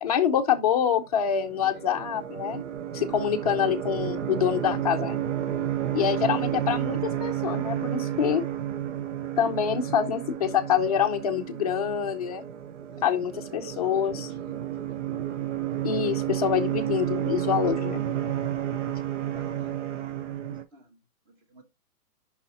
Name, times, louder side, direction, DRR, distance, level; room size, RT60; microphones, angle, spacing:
voice 1, 0.0-2.6 2.9-5.2 5.9-8.4 9.4-12.4 13.0-14.3 15.8-18.0, left 8 dB, 25° left, 0.6 m, -26 dB
sound 1, 1.2-20.6, right 11 dB, 50° right, 0.7 m, -31 dB
voice 2, 1.6-2.1 3.1-3.2 12.8-15.0 19.3-21.6, right 2 dB, 20° right, 1.4 m, -51 dB
6.7 x 5.7 x 4.0 m
hypercardioid pair, 160°, 47 cm